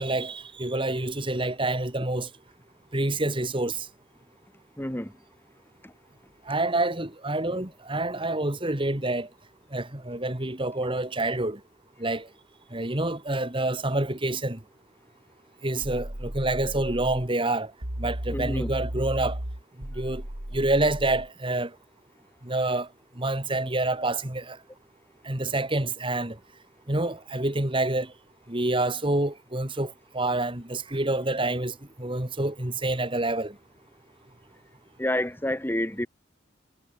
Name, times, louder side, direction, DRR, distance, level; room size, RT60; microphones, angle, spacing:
voice 1, 0.0-2.3 2.9-3.9 6.5-9.3 9.7-11.6 12.0-12.3 12.7-14.6 15.6-17.7 18.0-19.4 20.0-20.2 20.5-21.7 22.4-22.9 23.2-24.6 25.3-26.4 26.9-28.1 28.5-33.5, right 2 dB, 25° right, 2.2 m, -27 dB
voice 2, 4.8-5.1 5.8-5.9 18.3-18.7 35.0-36.1, left 1 dB, 10° left, 1.7 m, -28 dB
sound 1, 15.8-17.3 17.8-21.3, right 1 dB, 75° right, 3.6 m, -35 dB
head